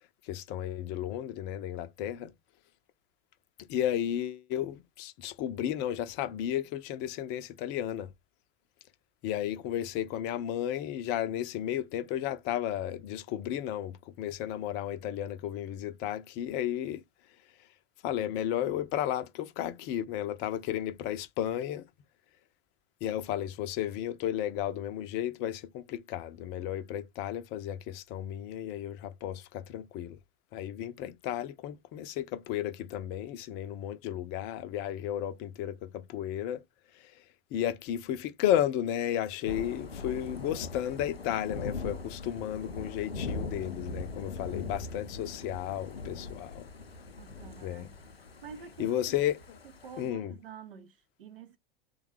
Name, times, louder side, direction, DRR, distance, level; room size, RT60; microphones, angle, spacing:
voice 1, 0.2-2.3 3.7-8.1 9.2-17.0 18.0-21.9 23.0-30.2 30.5-36.6 36.9-37.2 37.5-46.7 47.6-47.9 48.8-49.6 50.0-50.4, left 11 dB, 35° left, 0.5 m, -33 dB
Thunder / Rain, 39.5-50.1, left 3 dB, 90° left, 0.5 m, -41 dB
voice 2, 47.2-47.9 48.4-49.1 49.8-51.6, right 6 dB, 70° right, 0.6 m, -48 dB
3.4 x 2.2 x 3.2 m
figure-of-eight pair, 80°, 29 cm